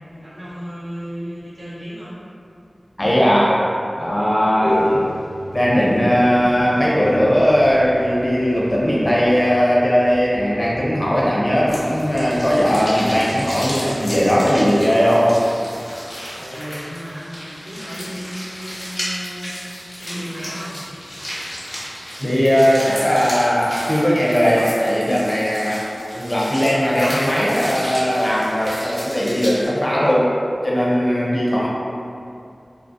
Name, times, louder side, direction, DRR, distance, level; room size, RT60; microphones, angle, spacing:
voice 1, 0.1-2.2 16.3-19.7 20.0-20.8, equal, 75° right, -9 dB, 0.8 m, -34 dB
voice 2, 3.0-3.7 4.0-5.1 5.5-15.4 22.2-30.3 30.6-31.7, equal, 25° left, -6 dB, 0.5 m, -18 dB
sound 1, 4.7-13.7, equal, 45° right, 0.5 m, -39 dB
sound 2, 11.7-29.7, equal, 60° left, 0.8 m, -33 dB
2.4 x 2.0 x 2.5 m, 2.5 s
wide cardioid pair, 55°, 0 cm